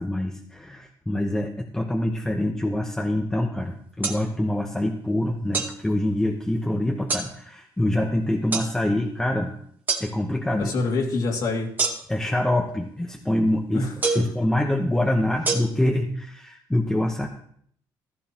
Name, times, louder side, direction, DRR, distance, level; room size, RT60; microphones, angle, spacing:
voice 1, 0.0-9.5 10.0-10.7 12.1-13.9 14.1-17.3, left 1 dB, 5° left, 0 dB, 1.1 m, -25 dB
sound 1, 4.0-4.2 5.5-5.7 7.1-7.3 8.5-8.7 9.9-10.1 11.8-12.2 14.0-14.3 15.5-15.6, right 4 dB, 25° right, 1.8 m, -25 dB
voice 2, 10.6-11.7 13.7-14.2, left 3 dB, 60° left, 1 dB, 2.7 m, -26 dB
15.0 x 13.5 x 3.0 m, 0.63 s
cardioid pair, 140°, 8 cm